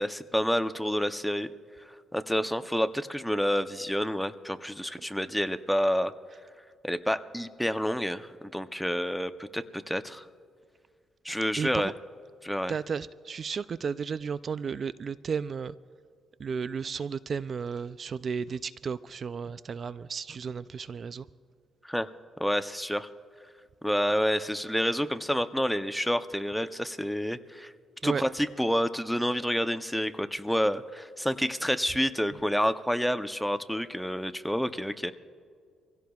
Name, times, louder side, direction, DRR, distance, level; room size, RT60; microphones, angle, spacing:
voice 1, 0.0-1.5 2.1-6.1 6.8-10.3 11.2-11.9 12.4-12.7 21.8-22.1 22.4-23.1 23.8-27.7 28.0-35.1, equal, ahead, 10 dB, 0.6 m, -29 dB
voice 2, 11.6-11.9 12.7-15.7 16.4-21.3 28.0-28.2, right 6 dB, 45° right, 15 dB, 0.3 m, -33 dB
25.5 x 16.5 x 2.3 m, 2.1 s
cardioid pair, 90°, 0 cm